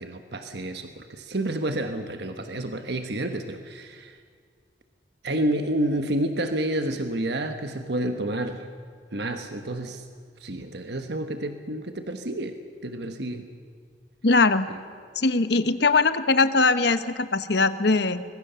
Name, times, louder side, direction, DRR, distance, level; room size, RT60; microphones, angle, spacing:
voice 1, 0.0-4.2 5.2-8.6 9.1-10.1 10.4-12.6 12.8-13.5, right 1 dB, 65° right, 7 dB, 1.3 m, -29 dB
voice 2, 14.2-14.7 15.1-18.2, left 3 dB, 65° left, 11 dB, 1.0 m, -21 dB
25.0 x 22.0 x 6.9 m, 2.1 s
head